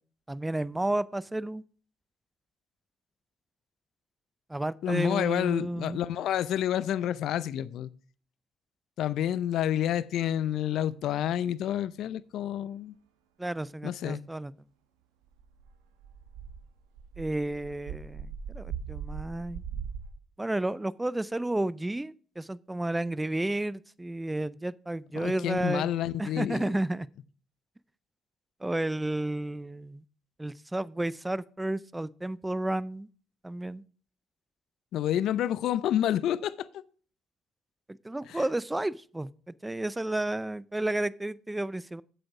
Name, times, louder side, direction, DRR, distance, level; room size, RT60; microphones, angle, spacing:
voice 1, 0.3-1.6 4.5-6.0 13.4-14.5 17.2-19.6 20.4-25.9 26.2-27.1 28.6-30.0 30.4-33.1 33.4-33.8 37.9-42.0, right 1 dB, 10° right, 0.5 m, -32 dB
voice 2, 4.8-7.9 9.0-13.0 13.8-14.2 25.2-26.8 34.9-36.7 38.3-38.4, left 11 dB, 70° left, 0.5 m, -29 dB
sound 1, 15.3-20.1, right 7 dB, 85° right, 1.2 m, -40 dB
7.8 x 7.7 x 4.7 m
supercardioid pair, 60°, 0 cm